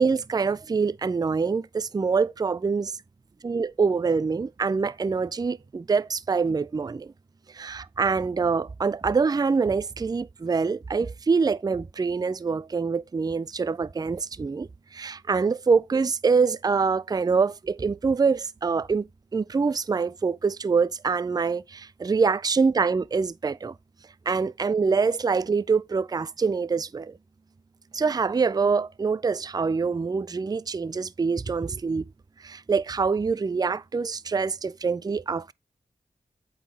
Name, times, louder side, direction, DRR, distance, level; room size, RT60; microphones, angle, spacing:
voice 1, 0.0-2.9 3.4-7.1 7.5-19.0 19.3-23.7 24.3-27.1 27.9-32.0 32.4-35.5, right 5 dB, 25° right, 0.3 m, -25 dB
8.2 x 3.9 x 4.0 m
cardioid pair, 45°, 17 cm